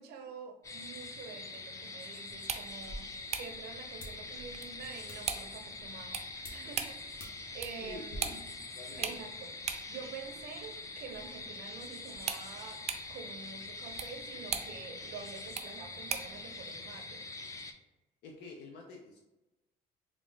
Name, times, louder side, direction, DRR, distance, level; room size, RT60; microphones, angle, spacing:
voice 1, 0.0-6.2 6.5-8.4 9.0-12.8 13.1-17.3, right 5 dB, 80° right, 5 dB, 0.6 m, -47 dB
sound 1, 0.6-17.7, left 3 dB, 20° left, 0.4 m, -44 dB
sound 2, 2.3-16.4, right 7 dB, 40° right, 0.4 m, -43 dB
sound 3, 2.7-8.2, left 1 dB, 65° left, 1.2 m, -52 dB
voice 2, 7.8-8.4 8.7-9.2 18.2-19.2, left 3 dB, 80° left, 0 dB, 0.5 m, -48 dB
3.6 x 2.4 x 3.6 m, 1.0 s
cardioid pair, 110°, 17 cm